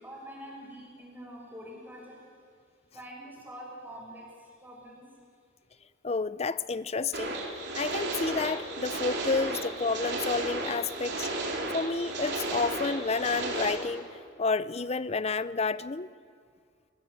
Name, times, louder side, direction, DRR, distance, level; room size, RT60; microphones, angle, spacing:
voice 1, 0.0-2.4 2.9-5.0 5.7-5.8 10.8-11.4, equal, 10° right, -3 dB, 6.5 m, -46 dB
voice 2, 6.0-7.4 7.7-11.3 11.7-14.1 14.4-16.1, left 4 dB, 35° left, 16 dB, 0.6 m, -30 dB
sound 1, 7.1-13.7, right 2 dB, 60° right, 4.3 m, -33 dB
22.5 x 20.0 x 7.6 m, 2.1 s
head